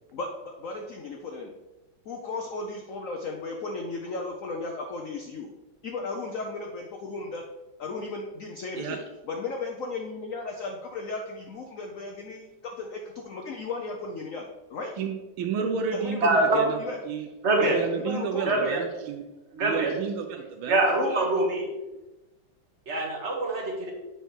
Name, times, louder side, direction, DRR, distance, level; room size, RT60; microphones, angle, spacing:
voice 1, 0.1-1.5 2.0-5.5 5.8-7.4 7.8-14.9 15.9-16.2 16.5-17.0 17.6-18.7, left 3 dB, 65° left, 2 dB, 0.8 m, -35 dB
voice 2, 15.0-16.8 17.0-17.3 17.6-19.2 19.6-20.8, right 6 dB, 90° right, 4 dB, 1.5 m, -31 dB
voice 3, 16.2-16.6 17.4-17.8 18.4-18.8 19.6-19.9 20.7-21.7 22.9-23.9, right 2 dB, 40° right, 1 dB, 1.3 m, -24 dB
8.1 x 4.6 x 4.5 m, 1.1 s
omnidirectional pair, 2.2 m